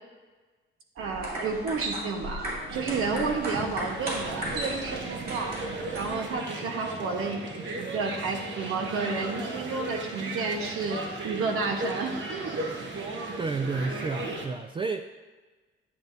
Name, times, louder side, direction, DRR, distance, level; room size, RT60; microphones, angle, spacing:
sound 1, 1.0-6.3, right 1 dB, 45° right, 2.9 m, -36 dB
voice 1, 1.0-5.6 5.9-12.6, right 4 dB, 90° right, 4 dB, 1.1 m, -31 dB
sound 2, 2.7-14.5, right 2 dB, 60° right, 1.3 m, -36 dB
voice 2, 13.4-15.0, right 4 dB, 25° right, 6 dB, 0.3 m, -30 dB
10.5 x 8.0 x 2.6 m, 1.3 s
cardioid pair, 120°, 21 cm